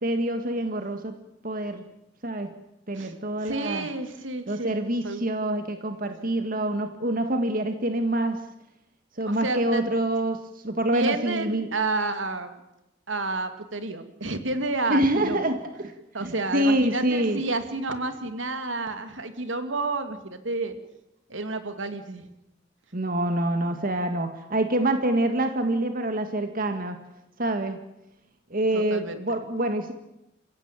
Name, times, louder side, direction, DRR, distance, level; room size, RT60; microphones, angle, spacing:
voice 1, 0.0-1.2 1.4-1.8 2.2-2.6 2.9-3.9 4.5-8.4 9.2-11.7 14.9-15.9 16.2-17.4 22.9-27.0 27.4-27.8 28.5-29.9, right 1 dB, 50° right, 7 dB, 1.9 m, -26 dB
voice 2, 3.4-4.8 5.0-5.2 9.3-9.9 10.9-12.5 13.1-15.4 16.1-20.8 21.3-22.3 28.7-29.4, right 3 dB, 80° right, 8 dB, 2.7 m, -30 dB
28.5 x 16.0 x 9.1 m, 0.90 s
head